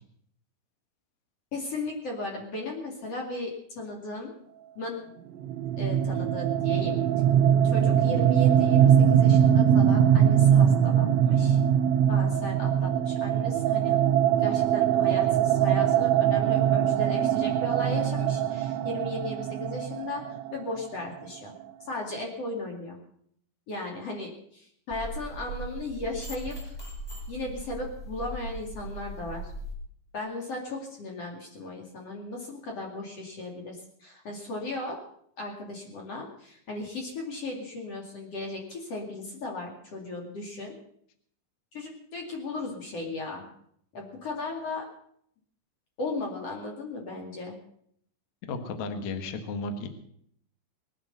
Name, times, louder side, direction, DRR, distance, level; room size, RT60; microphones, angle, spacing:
voice 1, 1.5-4.3 4.8-5.0 5.8-7.0 7.6-11.6 12.1-14.0 14.4-21.5 21.8-23.0 23.7-26.8 27.3-29.5 30.1-35.0 35.4-40.7 41.7-43.5 43.9-44.9 46.0-47.6, left 2 dB, 40° left, 0 dB, 2.5 m, -36 dB
sound 1, 5.4-21.0, right 9 dB, 80° right, 2.9 m, -22 dB
sound 2, 24.9-29.7, right 1 dB, ahead, 3.8 m, -39 dB
voice 2, 48.5-49.9, left 3 dB, 60° left, 7 dB, 1.9 m, -33 dB
21.0 x 9.3 x 6.8 m, 0.67 s
omnidirectional pair, 5.5 m